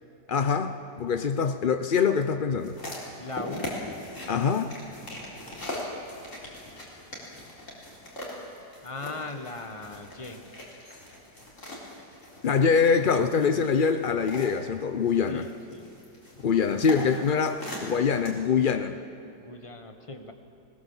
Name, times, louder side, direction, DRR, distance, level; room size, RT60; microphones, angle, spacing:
voice 1, 0.3-2.8 4.3-4.8 12.4-15.5 16.4-19.0, left 6 dB, 80° left, 9 dB, 0.4 m, -24 dB
sound 1, 2.6-18.3, left 1 dB, 40° left, 4.2 m, -41 dB
voice 2, 3.2-3.8 8.8-10.4 15.3-15.5 15.7-15.9 17.0-17.3 19.4-20.3, left 3 dB, 20° left, 6 dB, 1.2 m, -38 dB
20.0 x 19.0 x 7.2 m, 2.9 s
omnidirectional pair, 1.9 m